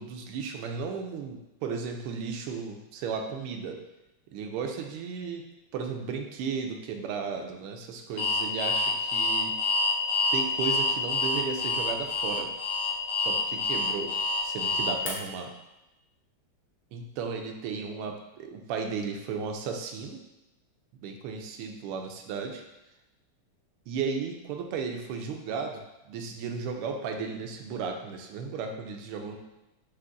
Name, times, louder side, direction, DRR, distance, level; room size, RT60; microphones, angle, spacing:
voice 1, 0.0-3.8 4.3-5.4 5.7-9.5 10.3-12.5 13.2-14.1 14.4-15.5 16.9-20.2 21.0-22.6 23.9-29.4, right 5 dB, 90° right, 4 dB, 1.5 m, -35 dB
Alarm, 8.2-15.1, left 3 dB, 90° left, 2.1 m, -27 dB
4.8 x 2.5 x 3.7 m, 0.97 s
omnidirectional pair, 2.4 m